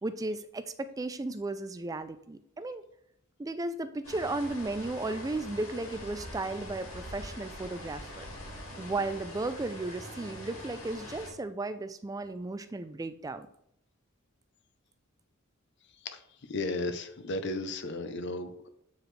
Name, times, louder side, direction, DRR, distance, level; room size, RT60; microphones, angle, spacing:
voice 1, 0.0-2.8 3.4-8.3 8.8-13.5, right 2 dB, 15° right, 11 dB, 0.3 m, -35 dB
sound 1, 4.0-11.3, left 1 dB, 75° left, 2.0 m, -44 dB
voice 2, 16.5-18.7, left 2 dB, 55° left, 8 dB, 0.6 m, -34 dB
7.8 x 4.8 x 3.2 m, 0.76 s
head